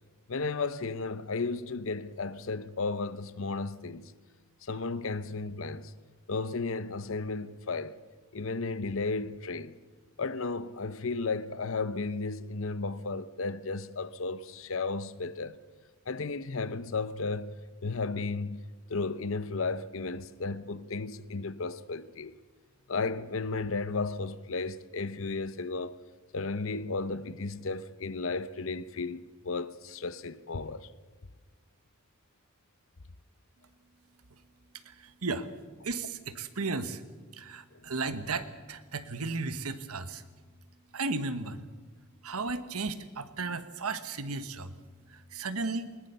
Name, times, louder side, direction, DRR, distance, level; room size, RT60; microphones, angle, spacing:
voice 1, 0.3-4.1 4.7-5.9 6.3-7.9 8.3-9.7 10.2-15.6 16.1-18.6 18.9-22.3 22.9-25.9 26.3-30.9, left 3 dB, 60° left, 0.8 m, -34 dB
voice 2, 34.8-35.5 35.8-37.0 37.3-40.2 40.9-41.7 42.2-44.7 45.1-45.9, right 3 dB, 85° right, 1.3 m, -35 dB
20.5 x 19.5 x 6.9 m
head